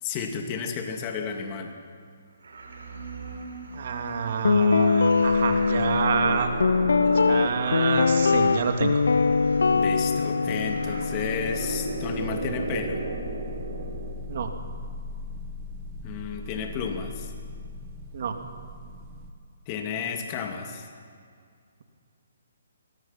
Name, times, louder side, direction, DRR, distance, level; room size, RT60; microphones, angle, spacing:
voice 1, 0.0-1.7 9.7-13.0 16.0-17.3 19.7-20.9, left 6 dB, 30° left, 4 dB, 2.6 m, -32 dB
sound 1, 2.4-14.1, right 3 dB, 75° right, 4.8 m, -36 dB
voice 2, 3.7-6.5 7.0-9.0 14.3-14.5 18.1-18.4, right 6 dB, 55° right, 5 dB, 2.5 m, -27 dB
Guitar, 4.4-12.6, left 4 dB, 80° left, 0.5 m, -23 dB
sound 2, 5.2-19.3, left 1 dB, 25° right, 1.7 m, -40 dB
23.5 x 20.5 x 5.9 m, 2.2 s
hypercardioid pair, 145°, 0 cm